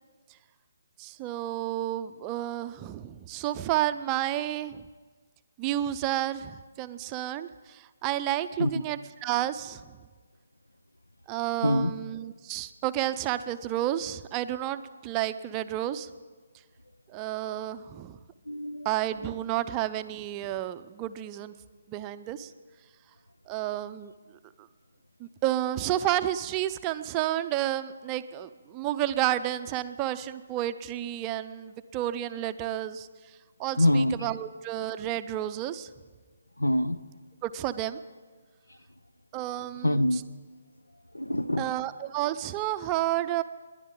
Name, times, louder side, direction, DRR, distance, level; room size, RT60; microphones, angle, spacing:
voice 1, 1.0-4.9 5.6-9.9 11.3-16.1 17.1-18.2 18.8-21.5 21.9-22.5 23.5-24.1 24.6-24.7 25.2-35.9 37.4-38.0 39.3-40.0 41.6-43.4, right 13 dB, 25° right, 0.5 m, -31 dB
voice 2, 11.6-12.0 18.5-18.9 33.8-34.3 36.6-37.0 38.7-38.8 39.8-40.2 41.1-41.7, left 1 dB, 85° left, 0.6 m, -25 dB
29.5 x 10.5 x 3.8 m
figure-of-eight pair, 140°, 0 cm